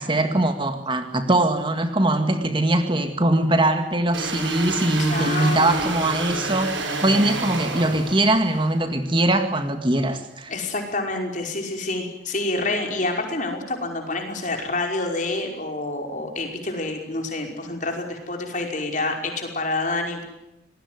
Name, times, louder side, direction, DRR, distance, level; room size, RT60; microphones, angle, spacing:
voice 1, 0.0-10.5, right 1 dB, 25° right, 7 dB, 2.0 m, -22 dB
sound 1, 4.1-8.7, right 2 dB, 85° right, 7.3 m, -29 dB
voice 2, 5.0-6.0 10.5-20.2, left 2 dB, 40° left, 3 dB, 5.4 m, -28 dB
27.0 x 20.5 x 9.6 m, 0.87 s
head